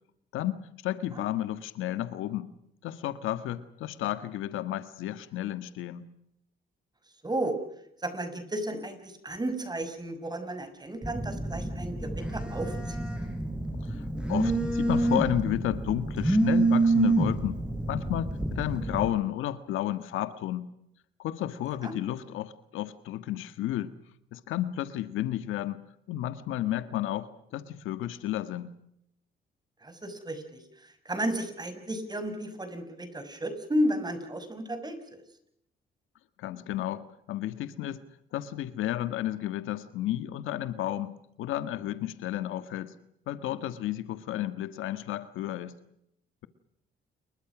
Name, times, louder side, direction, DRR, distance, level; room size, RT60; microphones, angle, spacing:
voice 1, 0.3-2.5 2.8-6.0 13.8-17.6 17.9-20.7 21.2-23.9 24.3-25.8 26.1-28.7 36.4-38.0 38.3-42.9 43.3-45.7, left 13 dB, 90° left, 12 dB, 1.7 m, -32 dB
voice 2, 7.2-7.6 8.0-13.0 21.8-22.0 29.8-35.2, right 1 dB, 20° right, 9 dB, 6.2 m, -33 dB
Telephone, 11.0-19.1, right 2 dB, 5° right, 7.1 m, -27 dB
29.0 x 23.0 x 6.2 m, 0.75 s
cardioid pair, 90°, 20 cm